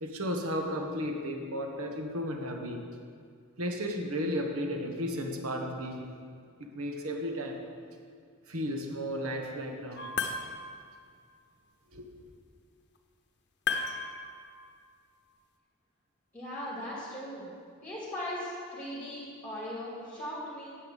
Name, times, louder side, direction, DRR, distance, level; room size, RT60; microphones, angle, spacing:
voice 1, 0.0-2.8 3.6-6.0 6.7-7.6 8.5-10.1 11.9-12.0, equal, 75° right, 3 dB, 1.4 m, -34 dB
sound 1, 10.0-10.9 13.7-14.8, left 5 dB, 50° left, 0.8 m, -34 dB
voice 2, 16.3-17.5 17.8-20.8, left 1 dB, 10° left, -7 dB, 2.5 m, -38 dB
9.9 x 8.0 x 7.2 m, 2.1 s
head